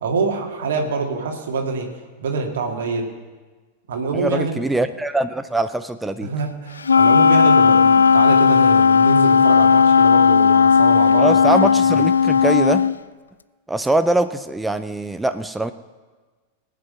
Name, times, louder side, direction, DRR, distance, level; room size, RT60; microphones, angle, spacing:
voice 1, 0.0-1.9 2.2-3.1 3.9-4.7 6.2-11.5 11.9-12.1, right 4 dB, 60° right, 3 dB, 2.0 m, -25 dB
voice 2, 4.1-6.3 11.2-12.8 13.7-15.7, right 2 dB, 5° right, 11 dB, 0.5 m, -22 dB
Wind instrument woodwind instrument, 6.8-13.0, left 6 dB, 75° left, 0.3 m, -14 dB
19.0 x 8.5 x 5.6 m, 1.4 s
figure-of-eight pair, 90°, 0 cm